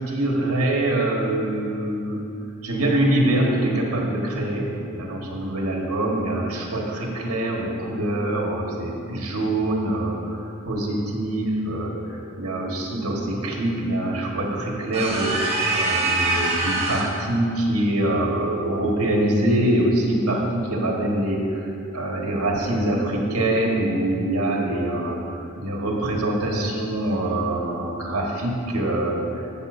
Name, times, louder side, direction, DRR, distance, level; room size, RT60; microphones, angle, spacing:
voice 1, 0.0-2.2 2.6-29.6, right 1 dB, 85° right, -2 dB, 1.5 m, -24 dB
sound 1, 14.9-17.2, right 2 dB, 30° right, 1.2 m, -24 dB
13.5 x 7.1 x 2.7 m, 2.6 s
head